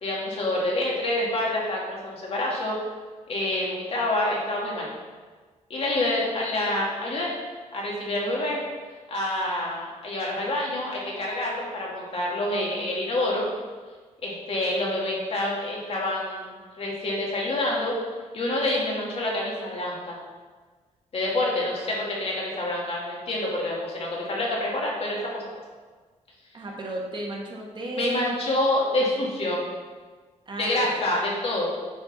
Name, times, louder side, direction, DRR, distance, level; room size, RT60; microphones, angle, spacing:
voice 1, 0.0-2.8 3.3-4.9 5.7-7.3 7.7-8.6 9.1-13.5 14.2-17.9 18.3-20.2 21.1-25.4 28.0-29.6 30.6-31.7, left 1 dB, 50° left, -3 dB, 2.3 m, -27 dB
voice 2, 26.5-28.5 30.4-31.1, right 1 dB, 35° right, -1 dB, 1.5 m, -34 dB
8.7 x 4.5 x 5.8 m, 1.4 s
cardioid pair, 115°, 13 cm